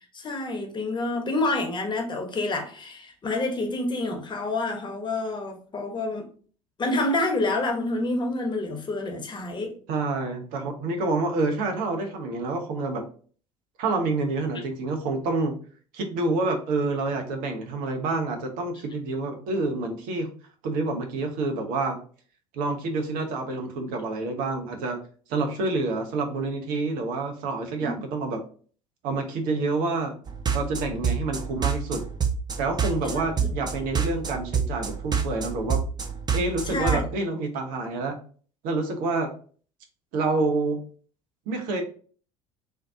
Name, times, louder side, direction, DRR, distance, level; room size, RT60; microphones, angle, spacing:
voice 1, 0.1-6.3 6.8-9.8 27.8-28.0 33.1-33.5 36.7-37.0, left 2 dB, 30° left, 1.1 m, -28 dB
voice 2, 9.9-13.0 13.8-15.6 15.9-20.3 20.6-22.0 22.5-25.0 25.3-28.4 29.0-30.1 30.5-32.0 32.6-35.8 36.3-38.2 38.6-39.3 40.1-40.8 41.5-41.8, right 3 dB, 60° right, 0.9 m, -28 dB
sound 1, 30.3-37.0, right 6 dB, 25° right, 0.7 m, -27 dB
3.7 x 2.8 x 3.6 m
figure-of-eight pair, 65°, 16 cm